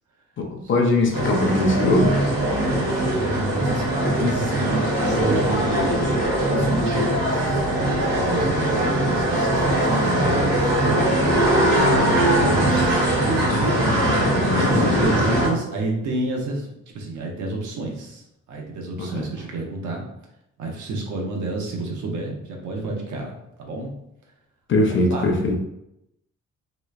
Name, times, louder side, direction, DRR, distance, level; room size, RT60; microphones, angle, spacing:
voice 1, 0.4-2.2 13.5-13.6 14.5-15.2 19.0-19.3 24.7-25.5, left 2 dB, 40° left, 2 dB, 0.6 m, -21 dB
sound 1, 1.1-15.5, right 1 dB, 55° right, 1.4 m, -21 dB
voice 2, 2.4-6.1 6.5-11.2 12.0-13.8 14.2-18.2 18.5-20.1 20.6-23.3 23.6-23.9 25.1-25.3, right 2 dB, 75° right, 0 dB, 0.7 m, -30 dB
2.9 x 2.0 x 2.3 m, 0.82 s
cardioid pair, 90°, 30 cm